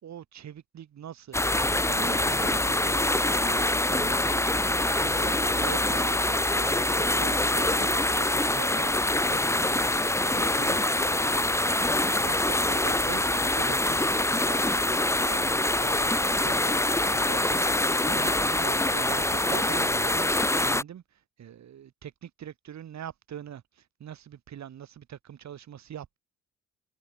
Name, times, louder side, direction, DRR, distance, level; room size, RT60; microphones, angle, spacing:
voice 1, 0.0-11.5 12.2-26.2, right 10 dB, 65° right, 6.8 m, -43 dB
sound 1, 1.3-20.8, left 1 dB, 10° left, 2.1 m, -25 dB
cardioid pair, 90°, 30 cm